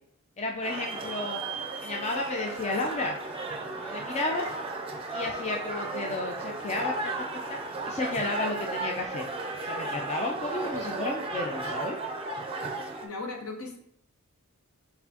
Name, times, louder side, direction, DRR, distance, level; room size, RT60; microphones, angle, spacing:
voice 1, 0.4-1.4 1.8-3.2 3.8-4.5 5.1-7.2 7.5-7.6 7.9-9.3 9.6-12.0, left 2 dB, 30° left, 1 dB, 0.4 m, -32 dB
sound 1, 0.6-13.1, right 2 dB, 25° right, 0.5 m, -35 dB
voice 2, 13.0-13.8, left 3 dB, 70° left, 2 dB, 0.8 m, -37 dB
4.3 x 4.1 x 2.8 m, 0.69 s
head